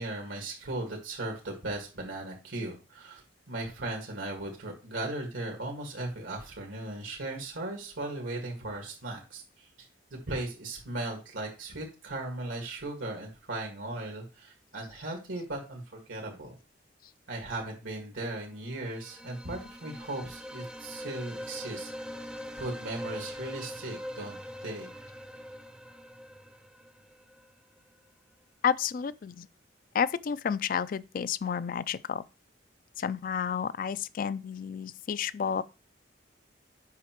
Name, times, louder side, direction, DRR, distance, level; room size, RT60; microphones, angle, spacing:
voice 1, 0.0-9.9 10.3-16.5 17.3-21.9 22.6-24.9, right 2 dB, 85° right, 1.9 m, -37 dB
sound 1, 18.7-27.5, equal, 5° right, 0.5 m, -43 dB
voice 2, 28.6-29.5 29.9-32.2 33.0-35.6, left 7 dB, 45° left, 0.3 m, -31 dB
8.3 x 5.6 x 3.0 m
head